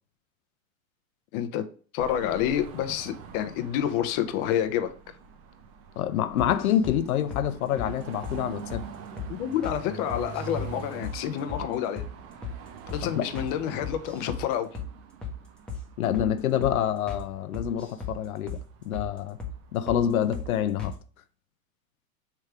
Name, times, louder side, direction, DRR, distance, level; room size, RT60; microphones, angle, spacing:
voice 1, 1.3-1.6 1.9-4.9 9.4-12.1 12.9-14.7, left 10 dB, 40° left, 0.6 m, -28 dB
Car passing by / Traffic noise roadway noise / Engine, 2.0-20.7, right 6 dB, 35° right, 0.5 m, -45 dB
voice 2, 6.0-8.8 13.0-13.2 16.0-18.6 18.8-19.4 19.7-20.9, left 10 dB, 85° left, 0.5 m, -27 dB
sound 1, 6.4-7.0 7.3-7.5 7.8-7.9 8.2-8.4 8.7-8.9 9.2-9.3 9.6-9.8 10.1-10.7 11.0-11.2 11.5-11.7 12.0-12.1 12.4-12.6 12.9-13.0 13.3-13.5 13.8-14.4 14.7-14.9 15.2-15.4 15.7-15.8 16.1-16.3 16.6-16.8 17.1-17.2 17.5-18.2 18.5-18.6 18.9-19.1 19.4-19.6 19.9-20.0 20.3-20.5 20.8-21.0, left 4 dB, ahead, 0.8 m, -35 dB
3.4 x 3.2 x 4.7 m
hypercardioid pair, 115°, 41 cm